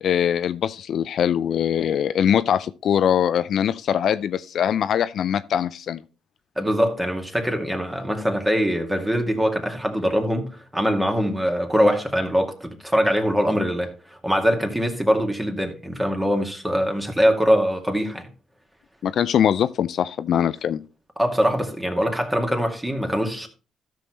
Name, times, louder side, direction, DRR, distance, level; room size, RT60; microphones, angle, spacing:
voice 1, 0.0-6.0 19.0-20.8, left 9 dB, 65° left, 0.4 m, -22 dB
voice 2, 6.6-18.3 21.2-23.5, equal, 10° right, 2.2 m, -23 dB
13.0 x 6.1 x 3.0 m
supercardioid pair, 55°, 0 cm